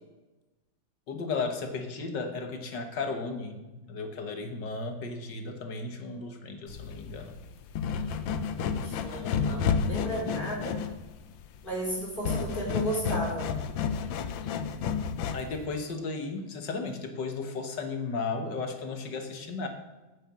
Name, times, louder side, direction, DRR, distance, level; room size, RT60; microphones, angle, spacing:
voice 1, 1.1-3.6 3.9-7.3 15.3-19.7, left 4 dB, 65° left, 6 dB, 1.9 m, -34 dB
sound 1, 6.7-15.6, left 6 dB, 85° left, 1.6 m, -31 dB
voice 2, 8.8-10.8 11.6-13.5, right 1 dB, 25° left, -3 dB, 4.5 m, -34 dB
9.3 x 8.9 x 7.4 m, 1.1 s
omnidirectional pair, 2.0 m